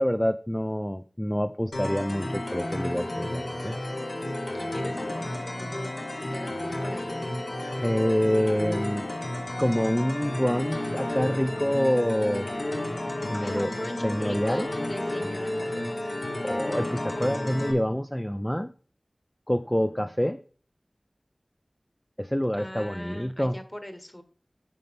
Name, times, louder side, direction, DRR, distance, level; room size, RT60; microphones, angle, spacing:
voice 1, 0.0-3.8 7.8-9.1 9.6-12.5 13.3-13.7 14.0-14.7 16.4-18.7 19.5-20.4 22.2-23.6, equal, 10° left, 9 dB, 0.4 m, -26 dB
sound 1, 1.7-17.7, left 1 dB, 80° left, 1.5 m, -32 dB
voice 2, 4.5-7.3 13.3-16.1 22.5-24.2, left 1 dB, 25° left, 8 dB, 1.2 m, -41 dB
9.4 x 5.7 x 3.6 m, 0.42 s
wide cardioid pair, 50°, 0 cm